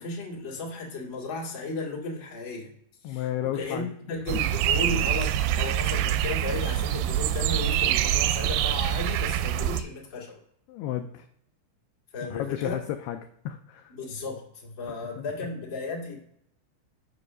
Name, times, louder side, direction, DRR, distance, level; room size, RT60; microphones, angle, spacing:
voice 1, 0.0-2.7 3.0-10.4 12.1-12.8 13.9-16.2, left 3 dB, 35° left, -3 dB, 2.0 m, -35 dB
voice 2, 3.0-3.9 4.3-4.4 10.7-11.3 12.2-13.2 13.5-13.9 14.9-15.3, left 12 dB, 85° left, 6 dB, 2.3 m, -33 dB
sound 1, 4.3-9.8, right 11 dB, 85° right, 2.7 m, -25 dB
8.0 x 5.4 x 6.1 m, 0.72 s
omnidirectional pair, 5.3 m